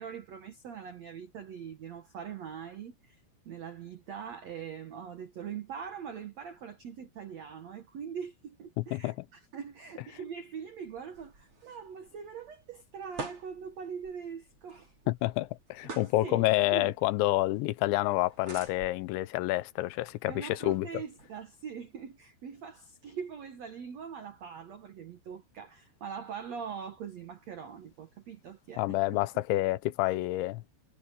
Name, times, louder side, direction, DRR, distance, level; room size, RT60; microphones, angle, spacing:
voice 1, 0.0-14.9 15.8-16.4 16.7-16.9 20.3-29.2, right 7 dB, 80° right, 1.5 m, -42 dB
voice 2, 8.8-9.3 15.1-20.9 28.8-30.6, left 18 dB, 85° left, 3.1 m, -28 dB
sound 1, 10.8-22.1, right 3 dB, 30° right, 5.3 m, -50 dB
omnidirectional pair, 5.2 m